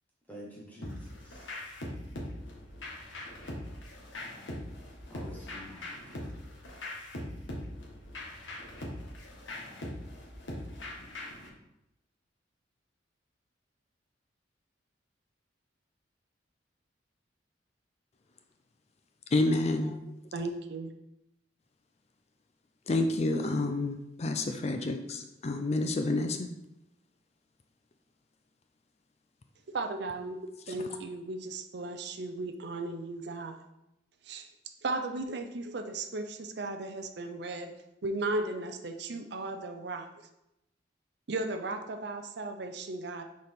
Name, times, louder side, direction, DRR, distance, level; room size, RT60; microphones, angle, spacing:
voice 1, 0.3-1.5 5.1-5.9, equal, 10° left, -6 dB, 1.3 m, -48 dB
sound 1, 0.8-11.5, left 1 dB, 85° left, 1.4 m, -41 dB
voice 2, 19.3-20.0 22.9-26.5, left 2 dB, 35° left, 6 dB, 0.4 m, -29 dB
voice 3, 20.3-20.9 29.7-30.4 30.7-33.6 34.3-34.5 34.8-37.7 38.0-40.1 41.3-43.2, right 2 dB, 60° right, 5 dB, 0.6 m, -36 dB
6.6 x 4.2 x 3.6 m, 0.86 s
head